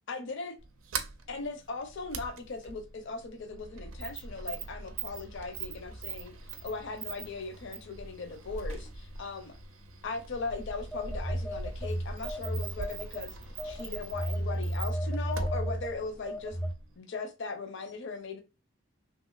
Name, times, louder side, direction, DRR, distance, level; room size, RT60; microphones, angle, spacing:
voice 1, 0.1-0.5 1.3-6.4 6.6-9.5 10.0-13.4 13.6-16.6 17.0-18.4, left 3 dB, 60° left, 0.5 m, -38 dB
Sliding door, 0.6-17.0, right 4 dB, 85° right, 0.5 m, -42 dB
Telephone, 10.9-13.2 13.6-16.7, right 1 dB, 5° left, 0.3 m, -33 dB
2.9 x 2.7 x 2.3 m
head